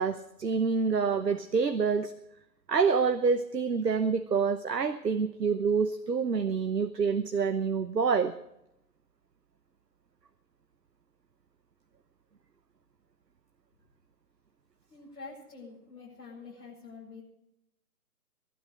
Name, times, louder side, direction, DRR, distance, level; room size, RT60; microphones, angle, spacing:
voice 1, 0.0-2.1 2.7-8.3, right 5 dB, 80° right, 10 dB, 1.1 m, -27 dB
voice 2, 14.9-17.2, left 4 dB, 70° left, -7 dB, 7.7 m, -46 dB
21.0 x 12.0 x 4.9 m, 0.83 s
figure-of-eight pair, 145°, 48 cm